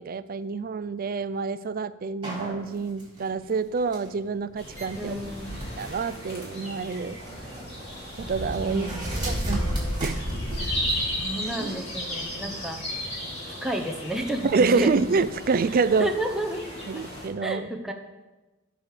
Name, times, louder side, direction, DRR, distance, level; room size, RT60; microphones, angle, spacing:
voice 1, 0.0-5.1 5.8-7.2 8.2-8.9 9.3-9.6 10.0-10.2 14.4-16.1 16.9-17.7, right 4 dB, 45° right, 15 dB, 0.4 m, -27 dB
sound 1, 2.2-11.7, right 2 dB, 25° right, 4.3 m, -41 dB
sound 2, 4.6-17.3, equal, 30° left, 3.2 m, -33 dB
voice 2, 5.0-5.5 8.7-10.2 11.2-12.8 13.4-14.9 16.0-16.6 17.4-17.9, right 1 dB, ahead, 1 dB, 0.9 m, -31 dB
13.5 x 4.9 x 6.7 m, 1.1 s
head